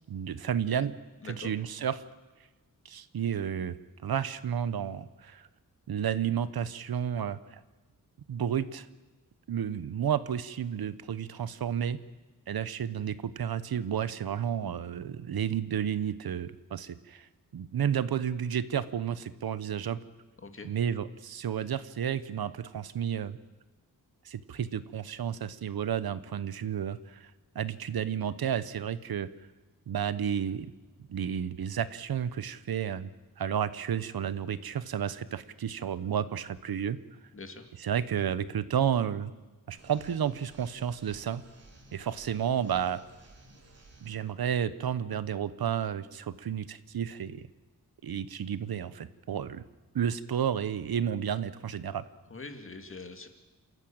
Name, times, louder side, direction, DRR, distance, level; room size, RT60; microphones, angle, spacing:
voice 1, 0.1-0.9 1.2-2.0 2.8-3.8 4.0-5.5 5.9-7.6 8.3-8.9 9.5-12.0 12.5-17.3 17.5-20.0 20.6-23.4 24.2-29.3 29.9-30.7 31.1-33.1 33.4-37.0 37.8-39.3 39.7-41.4 41.9-43.0 44.0-47.4 48.0-49.6 49.9-52.0, right 8 dB, 90° right, 15 dB, 1.0 m, -31 dB
voice 2, 37.3-37.7 52.3-53.3, left 3 dB, 35° left, 7 dB, 2.1 m, -43 dB
sound 1, 39.8-44.2, right 1 dB, 45° right, 3.5 m, -55 dB
28.0 x 14.0 x 8.8 m, 1.2 s
wide cardioid pair, 150°, 35 cm